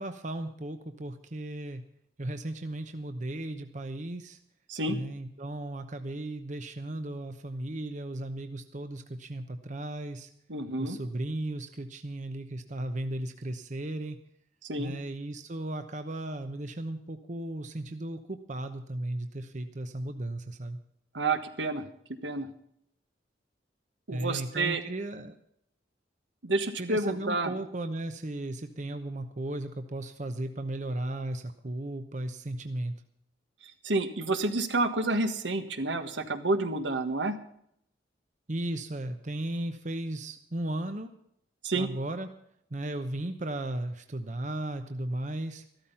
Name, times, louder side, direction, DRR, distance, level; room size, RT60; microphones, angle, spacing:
voice 1, 0.0-1.8 2.2-4.4 4.9-10.3 10.8-14.2 14.8-20.8 24.1-25.3 26.8-32.9 38.5-41.1 41.7-42.3 42.7-45.6, right 1 dB, 40° right, 8 dB, 0.9 m, -35 dB
voice 2, 10.5-11.0 14.6-14.9 21.1-21.9 22.2-22.5 24.1-24.8 26.4-27.5 33.8-37.4 41.6-41.9, right 2 dB, 80° right, 8 dB, 1.5 m, -29 dB
14.0 x 13.0 x 5.7 m, 0.71 s
head